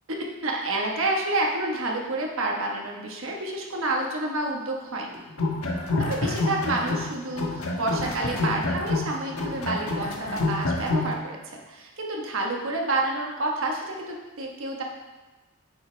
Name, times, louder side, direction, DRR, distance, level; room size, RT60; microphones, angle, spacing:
voice 1, 0.1-5.2 6.0-11.4 11.7-14.8, right 2 dB, 60° right, 0 dB, 1.3 m, -29 dB
sound 1, 5.3-7.1 7.4-11.1, left 2 dB, 80° left, 1.3 m, -27 dB
9.1 x 6.6 x 3.3 m, 1.2 s
head